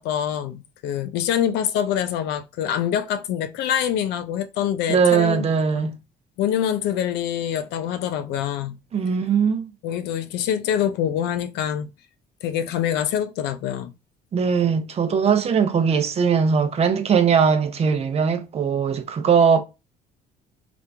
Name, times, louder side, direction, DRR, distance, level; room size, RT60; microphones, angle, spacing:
voice 1, 0.0-5.5 5.7-5.9 6.4-8.8 9.8-11.9 12.4-13.9, left 9 dB, 85° left, 0.5 m, -25 dB
voice 2, 4.9-6.0 8.9-9.7 14.3-19.6, right 6 dB, 40° right, 0.7 m, -20 dB
2.9 x 2.5 x 3.3 m
cardioid pair, 110°, 17 cm